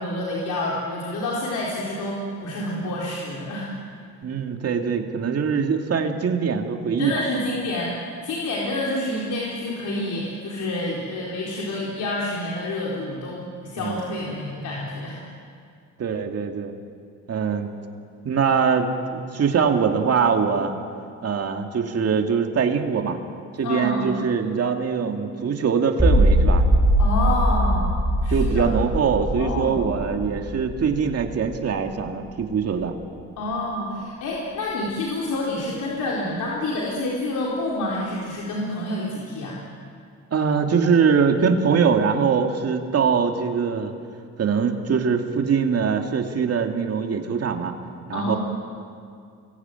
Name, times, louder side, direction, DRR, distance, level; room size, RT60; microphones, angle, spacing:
voice 1, 0.0-3.7 7.0-8.0 8.2-15.2 23.6-24.1 27.0-27.9 28.2-28.7 29.4-29.9 33.4-39.6 48.1-48.4, left 1 dB, 75° left, -4 dB, 4.3 m, -28 dB
voice 2, 4.2-7.1 13.8-14.1 16.0-16.7 17.3-17.7 18.2-20.7 21.2-23.2 23.6-26.6 28.3-32.9 40.3-43.9 44.4-47.7 48.1-48.4, right 6 dB, 55° right, 4 dB, 2.5 m, -22 dB
sound 1, 26.0-32.1, right 1 dB, 5° right, 6.9 m, -21 dB
26.0 x 22.0 x 9.2 m, 2.3 s
cardioid pair, 90°, 30 cm